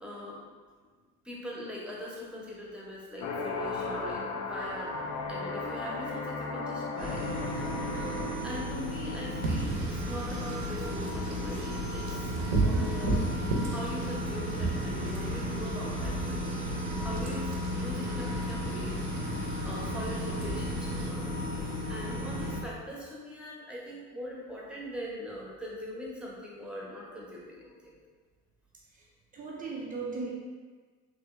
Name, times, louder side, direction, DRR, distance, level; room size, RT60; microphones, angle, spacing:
voice 1, 0.0-0.4 1.2-4.9 5.3-7.4 7.7-8.0 8.4-13.3 13.7-21.3 21.6-28.0, left 1 dB, ahead, -5 dB, 0.7 m, -42 dB
sound 1, 3.2-8.4, left 3 dB, 35° left, 0.5 m, -35 dB
sound 2, 7.0-22.6, left 1 dB, 70° left, 1.3 m, -34 dB
Wind / Rain, 9.4-21.1, right 3 dB, 50° right, 0.7 m, -34 dB
voice 2, 10.4-10.9 29.3-30.3, right 3 dB, 20° right, -3 dB, 0.3 m, -38 dB
3.5 x 2.9 x 2.2 m, 1.4 s
figure-of-eight pair, 55°, 46 cm